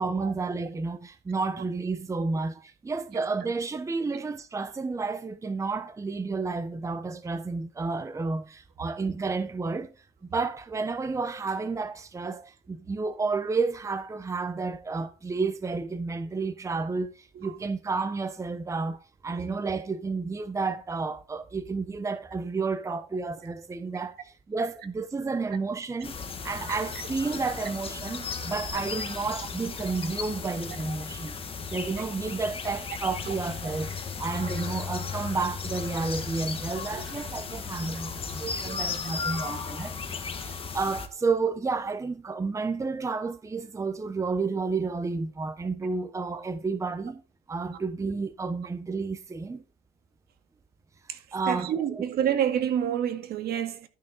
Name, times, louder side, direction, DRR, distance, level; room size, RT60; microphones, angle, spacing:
voice 1, 0.0-9.9 10.3-24.2 24.5-26.1 26.4-31.4 31.7-33.9 34.2-47.2 47.5-49.6 51.3-52.0, right 4 dB, 20° right, 0.9 m, -31 dB
sound 1, 26.0-41.1, left 5 dB, 35° left, 1.9 m, -36 dB
sound 2, 33.0-39.4, left 7 dB, ahead, 3.0 m, -41 dB
voice 2, 51.5-53.9, right 9 dB, 65° right, 2.1 m, -27 dB
12.5 x 6.9 x 4.1 m
cardioid pair, 110°, 17 cm